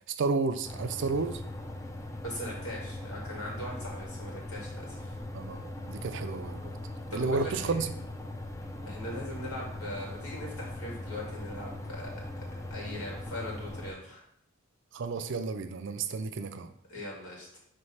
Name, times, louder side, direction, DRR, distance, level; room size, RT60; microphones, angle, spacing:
voice 1, 0.1-1.4 5.3-6.7 7.1-7.9 14.9-16.7, right 4 dB, 55° right, 9 dB, 0.5 m, -31 dB
sound 1, 0.6-13.9, left 1 dB, 15° left, 0.4 m, -40 dB
voice 2, 2.2-5.1 7.1-7.9 8.8-14.2 16.9-17.6, left 1 dB, 90° left, -3 dB, 2.2 m, -40 dB
5.2 x 3.2 x 5.5 m, 0.69 s
head